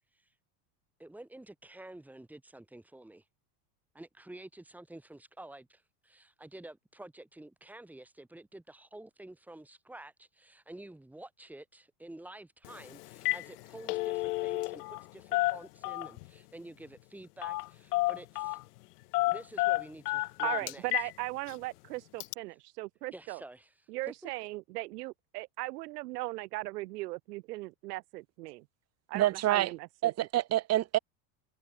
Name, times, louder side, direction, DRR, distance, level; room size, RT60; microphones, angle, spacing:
voice 1, 1.0-3.2 3.9-18.6 19.3-21.0 23.1-24.3, right 1 dB, 5° right, 7.5 m, -49 dB
Telephone, 12.6-12.8 13.1-13.5 13.7-15.0 15.3-16.3 17.4-17.7 17.9-18.6 19.1-21.1 21.5-21.6 22.2-22.3, left 20 dB, 80° left, 5.5 m, -30 dB
voice 2, 20.4-23.4 23.9-28.6 29.1-30.1, right 20 dB, 85° right, 2.3 m, -38 dB
voice 3, 29.1-29.7 30.0-31.0, right 14 dB, 35° right, 6.6 m, -27 dB
supercardioid pair, 170°, 46 cm